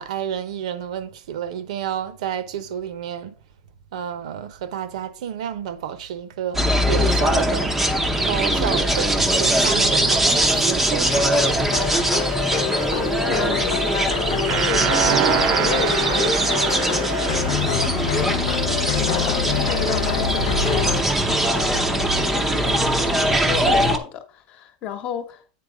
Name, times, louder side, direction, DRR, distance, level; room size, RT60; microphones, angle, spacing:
voice 1, 0.0-3.4 3.9-7.8 8.2-11.4 11.9-12.0, right 9 dB, 70° right, 0.9 m, -30 dB
sound 1, 6.5-24.0, right 1 dB, 5° right, 0.7 m, -21 dB
sound 2, 11.1-21.0, left 12 dB, 55° left, 0.5 m, -27 dB
voice 2, 13.3-17.6 17.8-18.5 18.9-25.4, left 8 dB, 30° left, 1.1 m, -32 dB
sound 3, 14.5-19.3, right 14 dB, 35° right, 0.3 m, -26 dB
8.7 x 4.5 x 4.9 m
supercardioid pair, 165°, 4 cm